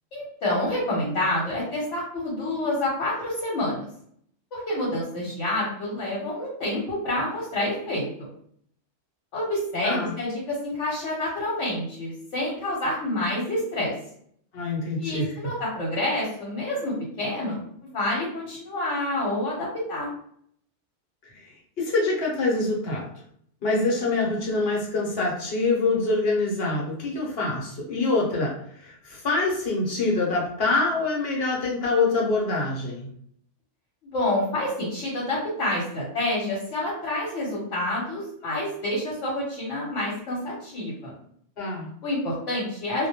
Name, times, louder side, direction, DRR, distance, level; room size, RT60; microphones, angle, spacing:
voice 1, 0.1-3.9 4.5-8.1 9.3-13.9 15.0-20.1 34.0-41.1 42.0-43.1, left 1 dB, 80° left, -5 dB, 1.1 m, -28 dB
voice 2, 9.8-10.1 14.5-15.3 21.8-23.1 23.6-33.1 41.6-41.9, left 3 dB, 60° left, -3 dB, 0.9 m, -25 dB
2.1 x 2.1 x 2.8 m, 0.65 s
omnidirectional pair, 1.2 m